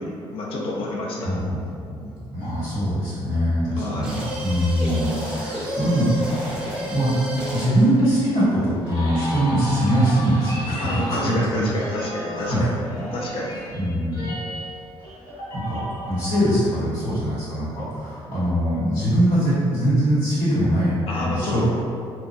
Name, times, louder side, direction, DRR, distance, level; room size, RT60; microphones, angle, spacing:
voice 1, 0.0-1.3 3.7-4.2 10.8-12.8 13.1-13.6 21.1-21.6, left 1 dB, 65° left, -2 dB, 0.5 m, -29 dB
voice 2, 1.2-6.1 6.8-7.2 7.5-11.6 12.3-12.6 13.7-14.3 15.5-21.6, equal, 90° left, -13 dB, 1.1 m, -22 dB
sound 1, 4.0-7.9, equal, 10° right, 0.5 m, -30 dB
sound 2, 5.8-16.5, equal, 50° left, 1.0 m, -35 dB
2.6 x 2.3 x 2.3 m, 2.4 s
cardioid pair, 170°, 10 cm